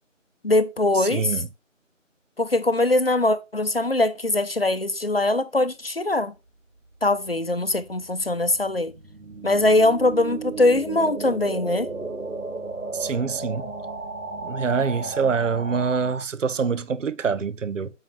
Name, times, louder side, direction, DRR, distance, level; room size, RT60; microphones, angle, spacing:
voice 1, 0.4-1.4 2.4-6.3 7.0-8.9 9.4-11.9, left 2 dB, 50° left, 0.7 m, -22 dB
voice 2, 1.0-1.5 12.9-13.7 14.4-17.9, right 5 dB, 70° right, 0.6 m, -25 dB
sound 1, 6.9-16.2, right 3 dB, 85° right, 1.4 m, -34 dB
7.8 x 5.6 x 3.1 m
figure-of-eight pair, 170°, 39 cm